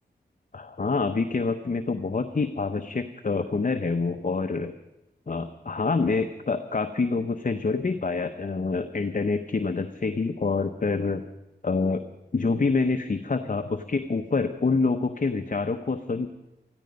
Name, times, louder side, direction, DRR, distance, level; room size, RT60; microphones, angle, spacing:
voice 1, 0.5-4.7 5.3-11.2 11.6-12.0 12.3-16.3, left 4 dB, 45° left, 8 dB, 0.8 m, -26 dB
16.5 x 14.0 x 5.3 m, 0.95 s
cardioid pair, 40°, 18 cm